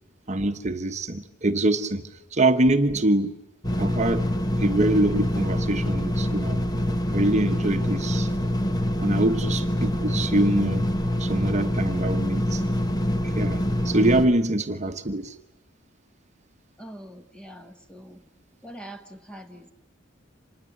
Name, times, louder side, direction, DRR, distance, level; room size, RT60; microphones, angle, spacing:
voice 1, 0.3-3.4 3.8-4.3 4.6-6.6 7.1-8.3 9.0-10.9 11.2-12.6 13.3-15.3, right 1 dB, 35° right, 1.1 m, -24 dB
sound 1, 3.6-14.3, left 1 dB, 20° left, 1.1 m, -25 dB
voice 2, 16.8-18.2 18.6-19.7, right 1 dB, 5° left, 1.5 m, -43 dB
26.0 x 20.5 x 9.9 m
head